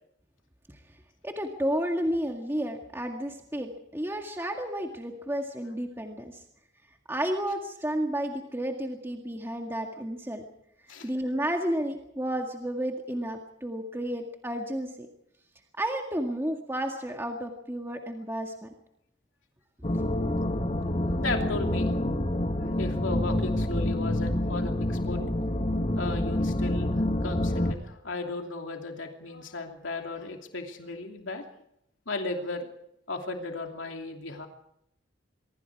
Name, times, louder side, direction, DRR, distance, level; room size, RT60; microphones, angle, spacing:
voice 1, 1.2-6.4 7.1-10.4 11.0-15.1 15.8-18.7, equal, 10° right, 2 dB, 1.9 m, -31 dB
sound 1, 19.8-27.7, left 1 dB, 35° left, 1.5 m, -27 dB
voice 2, 21.0-21.9 22.6-25.2 26.0-26.9 27.2-31.4 32.1-32.7 33.1-34.5, left 3 dB, 85° left, 3 dB, 2.8 m, -35 dB
24.0 x 24.0 x 4.8 m, 0.76 s
head